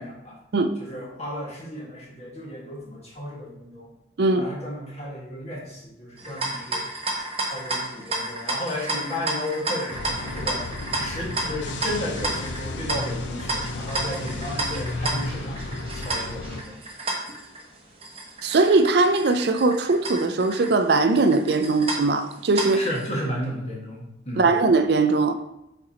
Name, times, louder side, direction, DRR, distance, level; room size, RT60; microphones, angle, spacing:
voice 1, 0.0-0.4 0.8-3.9 4.3-6.9 7.4-15.6 15.9-16.8 22.7-24.5, left 1 dB, 35° left, -3 dB, 1.7 m, -34 dB
sound 1, 6.2-23.1, right 2 dB, 30° right, 0.9 m, -32 dB
sound 2, 9.9-16.6, left 2 dB, 80° left, 0.6 m, -33 dB
voice 2, 18.4-22.8 24.4-25.3, right 3 dB, 60° right, 8 dB, 0.4 m, -20 dB
7.8 x 4.5 x 2.9 m, 0.87 s
head